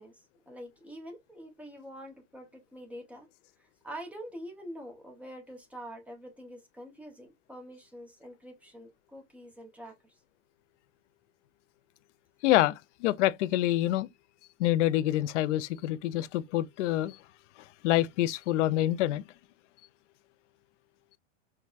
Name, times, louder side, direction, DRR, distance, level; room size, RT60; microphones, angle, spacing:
voice 1, 0.0-3.3 3.6-10.0, equal, 5° right, 0.7 m, -45 dB
voice 2, 12.4-14.1 14.6-17.2 17.8-19.2, left 14 dB, 75° left, 0.5 m, -26 dB
4.6 x 2.2 x 2.4 m
supercardioid pair, 145°, 37 cm